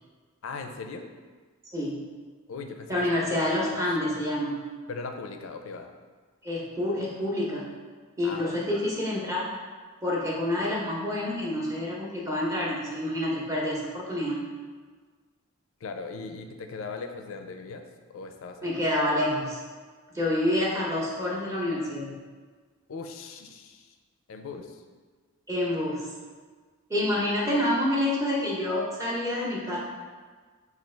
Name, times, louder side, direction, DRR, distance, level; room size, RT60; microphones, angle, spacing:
voice 1, 0.4-1.1 2.5-2.9 3.2-3.8 4.9-5.9 8.2-8.5 15.8-17.8 18.1-18.7 22.9-23.9 24.3-24.7, left 4 dB, 65° left, 6 dB, 0.4 m, -38 dB
voice 2, 1.7-2.0 2.9-4.7 6.4-7.7 8.2-9.5 10.0-14.4 18.6-19.6 20.1-22.2 25.5-26.1 26.9-29.8, left 1 dB, 15° right, -4 dB, 0.7 m, -28 dB
5.7 x 2.4 x 3.2 m, 1.5 s
head